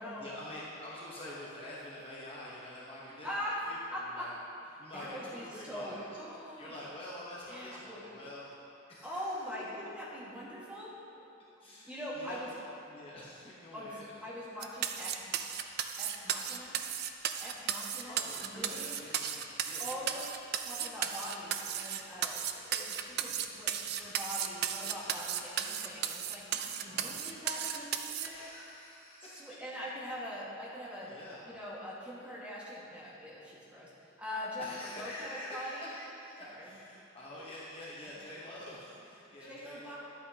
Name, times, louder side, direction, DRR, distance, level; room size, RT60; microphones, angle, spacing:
voice 1, 0.2-3.3 3.7-4.4 4.8-6.1 6.6-8.5 8.9-9.2 11.6-12.5 12.8-14.1 18.0-20.2 26.8-27.3 28.2-29.5 31.0-31.6 34.6-40.0, left 1 dB, 30° left, -6 dB, 1.0 m, -47 dB
voice 2, 3.2-3.6 3.9-4.3 4.9-6.7 7.5-8.3 9.0-10.9 11.8-12.5 13.7-13.9 14.2-15.2 16.0-16.8 17.4-19.0 19.8-20.2 20.6-28.4 29.2-31.1 31.5-35.9 36.4-36.8 39.4-40.0, equal, 5° right, -7 dB, 1.6 m, -42 dB
sound 1, 14.6-28.3, right 9 dB, 50° right, 0.4 m, -35 dB
11.5 x 8.4 x 2.8 m, 2.8 s
head